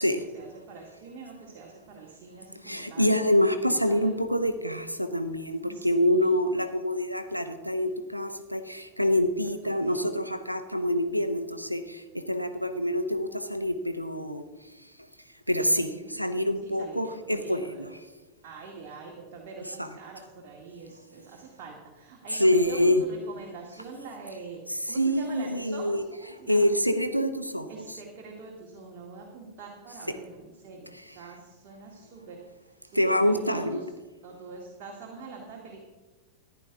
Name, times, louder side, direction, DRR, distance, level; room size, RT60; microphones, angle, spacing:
voice 1, 0.0-3.1 3.7-4.1 5.6-6.4 9.9-10.1 15.7-16.1 16.6-17.9 18.4-26.7 27.7-32.4 32.8-33.8 34.2-35.8, right 4 dB, 40° right, -1 dB, 2.1 m, -44 dB
voice 2, 2.6-12.0 12.3-14.5 15.5-17.9 19.8-19.9 22.3-23.0 24.7-26.0 26.5-27.7 32.9-33.8, left 1 dB, 90° right, 9 dB, 0.8 m, -26 dB
14.5 x 10.5 x 3.7 m, 1.2 s
figure-of-eight pair, 90°, 0 cm